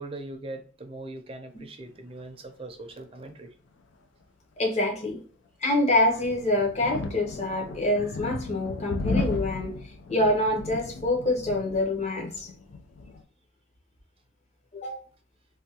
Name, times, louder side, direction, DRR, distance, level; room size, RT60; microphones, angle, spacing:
voice 1, 0.0-3.5, right 2 dB, 30° right, 0.5 m, -40 dB
voice 2, 4.6-5.2 5.6-9.8 10.1-12.5 14.7-15.0, left 1 dB, 35° left, 0.9 m, -26 dB
sound 1, 5.7-13.2, left 3 dB, 75° left, 0.4 m, -35 dB
3.3 x 2.2 x 2.7 m
head